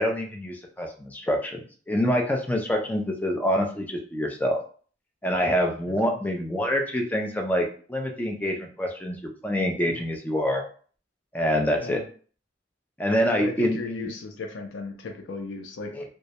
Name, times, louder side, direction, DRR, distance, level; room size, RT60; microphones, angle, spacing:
voice 1, 0.0-1.6 1.9-4.6 5.2-10.6 11.3-12.0 13.0-14.1 15.9-16.0, equal, 10° left, 2 dB, 0.3 m, -26 dB
voice 2, 5.9-6.2 9.9-10.1 11.8-12.0 13.3-16.0, left 3 dB, 80° left, 4 dB, 0.4 m, -36 dB
2.2 x 2.0 x 2.8 m, 0.43 s
head